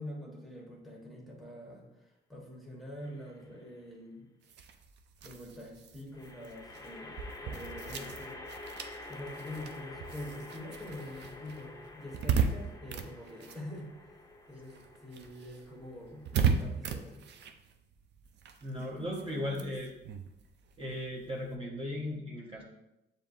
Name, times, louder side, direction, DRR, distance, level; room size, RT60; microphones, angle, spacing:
voice 1, 0.0-4.3 5.2-8.4 9.1-14.2 14.5-14.8 15.0-17.5, left 1 dB, ahead, -3 dB, 1.2 m, -45 dB
sound 1, 3.0-3.6 6.1-17.5, left 2 dB, 15° left, 0.5 m, -48 dB
sound 2, 4.4-14.3 14.6-21.6, right 6 dB, 60° right, 0.5 m, -37 dB
voice 2, 18.6-19.9 20.8-22.6, left 1 dB, 25° right, -4 dB, 1.0 m, -37 dB
7.0 x 2.8 x 2.6 m, 0.89 s
cardioid pair, 90°, 20 cm